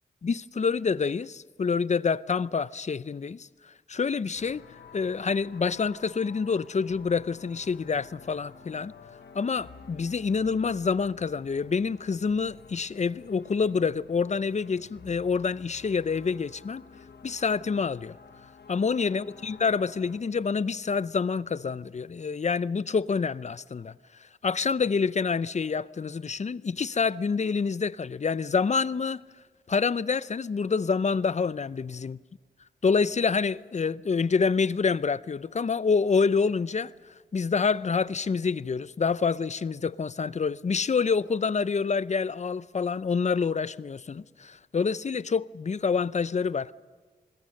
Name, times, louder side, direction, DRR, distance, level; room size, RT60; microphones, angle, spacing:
voice 1, 0.2-4.6 4.9-8.9 9.3-16.8 17.2-18.2 18.7-23.9 24.4-29.2 29.7-32.2 32.8-36.9 37.3-46.7, left 5 dB, 45° left, 0.6 m, -27 dB
sound 1, 4.3-20.2, left 6 dB, 90° left, 1.2 m, -51 dB
27.5 x 21.5 x 6.5 m
cardioid pair, 60°, 17 cm